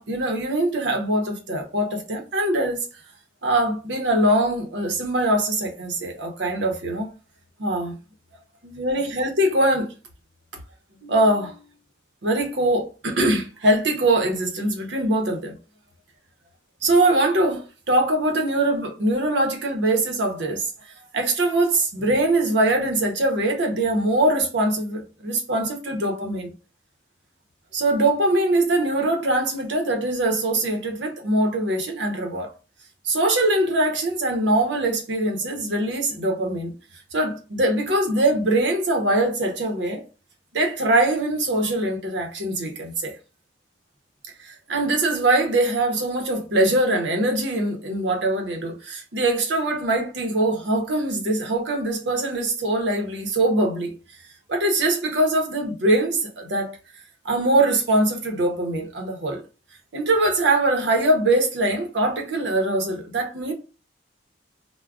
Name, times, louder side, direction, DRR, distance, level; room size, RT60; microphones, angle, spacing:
voice 1, 0.0-2.9 3.4-7.1 7.6-8.0 8.6-9.9 11.0-11.6 12.2-15.5 16.8-20.7 21.1-26.5 27.7-32.5 33.0-36.7 37.1-40.0 40.5-43.2 44.4-53.9 54.5-56.7 57.2-59.4 59.9-63.5, right 1 dB, 80° right, 0.8 m, -22 dB
2.3 x 2.2 x 3.4 m
head